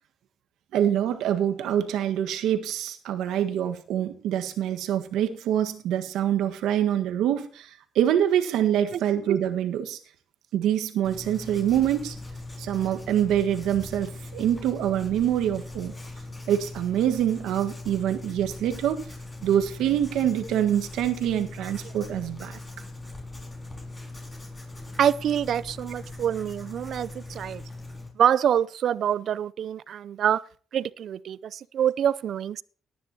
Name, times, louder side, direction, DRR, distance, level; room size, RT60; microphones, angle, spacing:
voice 1, 0.7-10.0 10.5-12.2 12.6-15.9 16.5-19.0 19.4-22.6, right 10 dB, 85° right, 1.5 m, -25 dB
Writing, 11.0-28.1, left 2 dB, 20° left, 5.3 m, -40 dB
voice 2, 25.0-27.6 28.2-30.4 30.7-32.6, right 9 dB, 65° right, 0.5 m, -25 dB
18.5 x 10.0 x 2.9 m
cardioid pair, 90°, 0 cm